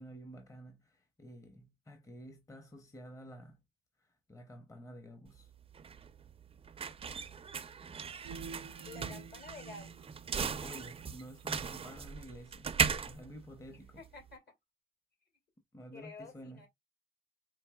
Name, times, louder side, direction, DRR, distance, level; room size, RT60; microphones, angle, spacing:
voice 1, 0.0-3.6 4.0-5.5 9.1-9.2 10.4-12.8 13.0-14.1 15.7-16.6, equal, 15° left, 0.7 m, -51 dB
sound 1, 5.3-14.3, right 6 dB, 30° right, 0.4 m, -38 dB
sound 2, 8.2-11.1, right 5 dB, 75° right, 0.6 m, -49 dB
voice 2, 8.9-10.0 14.0-14.4 15.9-16.7, left 3 dB, 55° left, 2.0 m, -50 dB
4.6 x 2.7 x 2.2 m
cardioid pair, 90°, 20 cm